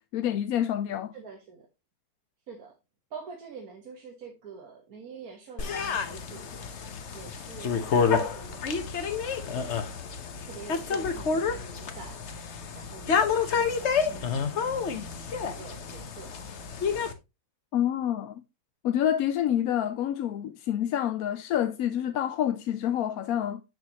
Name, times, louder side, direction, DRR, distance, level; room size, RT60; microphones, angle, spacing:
voice 1, 0.1-1.1 17.7-18.4 18.8-23.6, left 10 dB, 80° left, 1.0 m, -27 dB
voice 2, 1.1-1.7 2.5-2.7 3.1-8.8 9.2-9.8 10.4-12.4 12.7-14.5 15.4-16.4, right 5 dB, 75° right, 1.7 m, -46 dB
sound 1, 5.6-17.1, left 6 dB, 55° left, 1.2 m, -29 dB
7.5 x 7.2 x 2.9 m
omnidirectional pair, 1.6 m